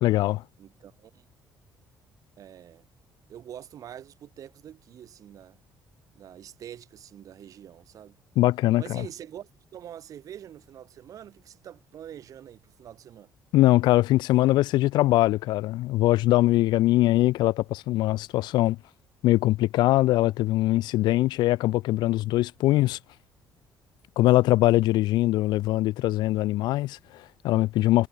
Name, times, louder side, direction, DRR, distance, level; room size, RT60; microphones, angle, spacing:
voice 1, 0.0-0.4 8.4-9.0 13.5-18.8 19.2-23.0 24.2-28.1, left 16 dB, 85° left, 0.9 m, -22 dB
voice 2, 0.6-1.3 2.4-2.9 3.3-5.6 6.1-8.2 8.8-13.3, right 10 dB, 50° right, 5.6 m, -45 dB
cardioid pair, 150°, 7 cm